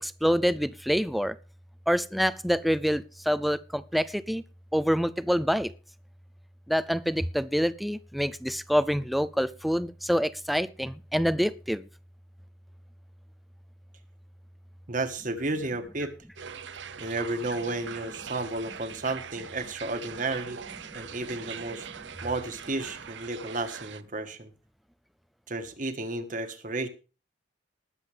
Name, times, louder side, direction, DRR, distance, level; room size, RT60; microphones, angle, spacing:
voice 1, 0.0-1.3 1.9-4.4 4.7-5.7 6.7-11.9, equal, ahead, 16 dB, 0.5 m, -26 dB
voice 2, 14.9-16.1 17.0-20.6 20.9-21.9 22.2-24.5 25.5-26.9, right 2 dB, 45° right, 8 dB, 1.6 m, -32 dB
sound 1, 16.4-24.0, right 7 dB, 70° right, 0.8 m, -42 dB
20.0 x 7.7 x 3.5 m, 0.35 s
head